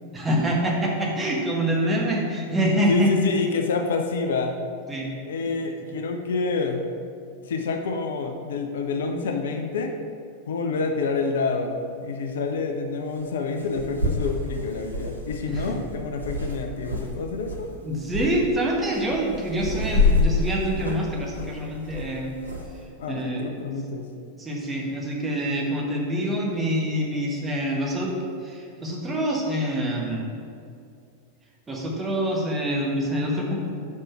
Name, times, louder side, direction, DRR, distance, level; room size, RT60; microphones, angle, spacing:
voice 1, 0.1-3.1 4.9-5.1 15.5-15.7 17.8-22.3 23.1-23.4 24.4-28.1 28.4-30.2 31.7-33.8, equal, 15° right, -2 dB, 1.4 m, -26 dB
voice 2, 2.9-4.6 5.3-6.8 7.4-9.9 10.5-17.7 23.0-24.1, left 4 dB, 60° left, 4 dB, 0.6 m, -27 dB
sound 1, 11.2-11.3 13.1-13.2 13.6-17.1 17.4-17.7 18.1-18.3 18.8-22.7, left 3 dB, 85° right, 1.0 m, -27 dB
5.5 x 5.3 x 5.8 m, 2.4 s
figure-of-eight pair, 90°, 0 cm